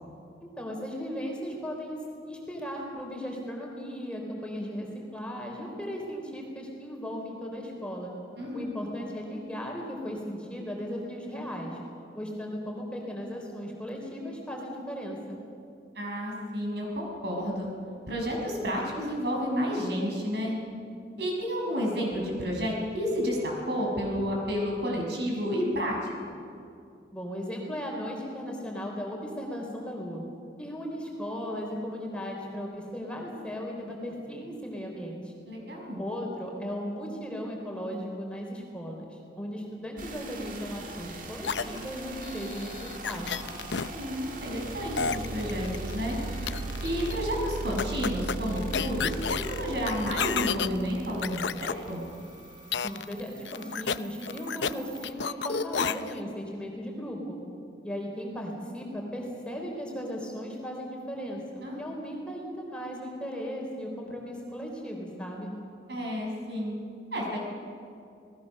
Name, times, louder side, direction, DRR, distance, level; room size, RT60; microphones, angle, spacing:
voice 1, 0.4-2.0 2.3-8.1 8.5-11.8 12.1-15.4 27.1-30.2 30.6-35.3 36.0-42.8 43.0-43.4 52.8-57.4 57.8-65.5, equal, 5° left, -1 dB, 3.8 m, -36 dB
voice 2, 15.9-17.7 18.1-20.6 21.2-26.1 35.5-36.0 43.8-46.2 46.8-52.0 61.6-62.0 65.9-66.8 67.1-67.4, equal, 65° right, -1 dB, 6.4 m, -31 dB
sound 1, 40.0-55.1, right 2 dB, 50° right, 2.2 m, -39 dB
sound 2, 41.4-43.9 45.0-46.1 46.5-47.2 47.8-50.7 51.2-51.7 52.7-53.2 53.5-54.7 55.0-56.2, left 6 dB, 80° left, 0.7 m, -31 dB
28.5 x 19.5 x 6.7 m, 2.5 s
head